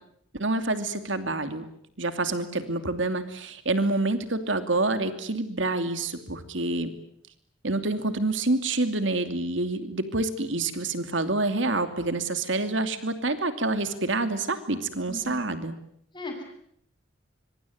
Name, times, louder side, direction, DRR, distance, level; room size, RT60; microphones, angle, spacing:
voice 1, 0.3-1.6 2.0-6.9 7.6-15.7, right 2 dB, 75° right, 9 dB, 2.7 m, -27 dB
voice 2, 15.1-15.5 16.1-16.4, left 2 dB, 25° left, 3 dB, 7.8 m, -37 dB
25.0 x 24.0 x 9.4 m, 0.72 s
head